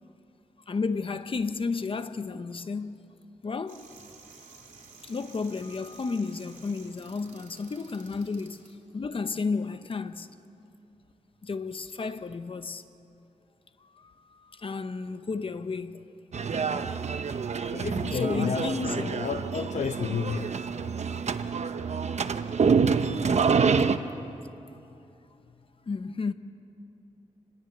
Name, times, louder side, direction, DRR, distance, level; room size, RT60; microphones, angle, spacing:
voice 1, 0.7-3.0 3.4-3.9 5.0-8.7 8.9-10.3 11.4-12.8 13.8-16.1 18.2-18.9 25.4-25.5 25.9-26.3, left 4 dB, 45° left, 1.0 m, -32 dB
sound 1, 3.7-8.7, right 4 dB, 80° right, 3.7 m, -52 dB
sound 2, 16.3-24.0, right 5 dB, 60° right, 0.9 m, -27 dB
voice 2, 17.7-20.7, left 6 dB, 65° left, 0.8 m, -32 dB
27.5 x 21.0 x 8.1 m
wide cardioid pair, 120°, 13 cm